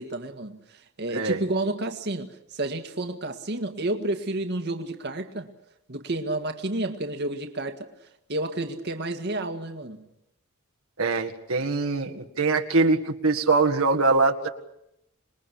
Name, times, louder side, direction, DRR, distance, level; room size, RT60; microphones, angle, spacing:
voice 1, 0.0-5.5 5.9-7.9 8.3-10.0, right 2 dB, 50° right, 1.8 m, -30 dB
voice 2, 11.0-14.5, right 3 dB, 70° right, 1.8 m, -23 dB
27.0 x 21.5 x 8.4 m
head